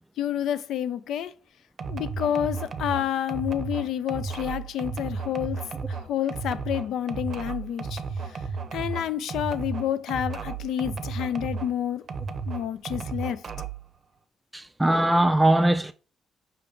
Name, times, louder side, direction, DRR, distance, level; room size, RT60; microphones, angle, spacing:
voice 1, 0.2-1.3 1.9-8.4 8.7-12.0 12.5-13.4, left 10 dB, 80° left, 0.4 m, -29 dB
sound 1, 1.8-11.7 12.1-13.9, right 5 dB, 50° right, 0.6 m, -33 dB
voice 2, 14.5-15.9, right 1 dB, 10° right, 0.3 m, -21 dB
5.7 x 2.5 x 3.5 m
cardioid pair, 90°, 0 cm